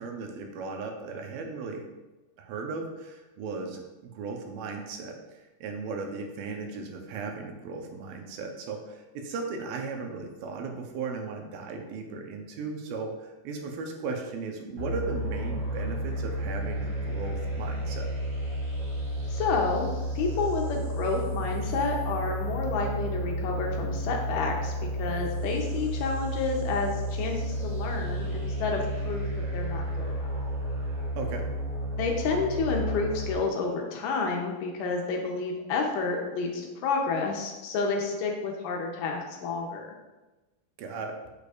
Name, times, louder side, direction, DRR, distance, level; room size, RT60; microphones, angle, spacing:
voice 1, 0.0-1.8 2.4-18.1 31.2-31.5 40.8-41.2, right 4 dB, 85° right, 3 dB, 2.5 m, -36 dB
sound 1, 14.8-33.3, equal, 45° right, 1.8 m, -32 dB
voice 2, 19.3-19.9 20.2-29.3 29.5-30.2 32.0-39.9, left 4 dB, 75° left, 1 dB, 2.1 m, -30 dB
6.7 x 6.6 x 2.4 m, 1.2 s
omnidirectional pair, 4.1 m